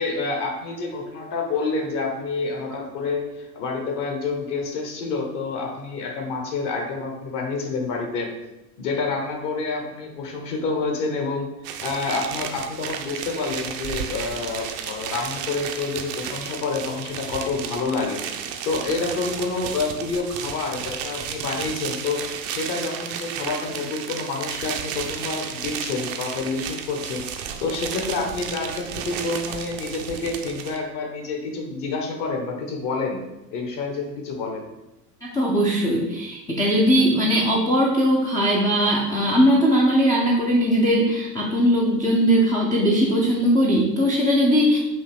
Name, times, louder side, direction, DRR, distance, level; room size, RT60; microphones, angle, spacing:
voice 1, 0.0-8.3 8.8-11.5 11.8-33.2 33.5-34.7, left 3 dB, 40° left, 2 dB, 1.1 m, -28 dB
sound 1, 11.6-30.8, right 8 dB, 40° right, 0.5 m, -33 dB
voice 2, 35.2-44.8, equal, 10° left, -3 dB, 0.4 m, -19 dB
5.5 x 2.7 x 3.5 m, 0.96 s
figure-of-eight pair, 80°, 49 cm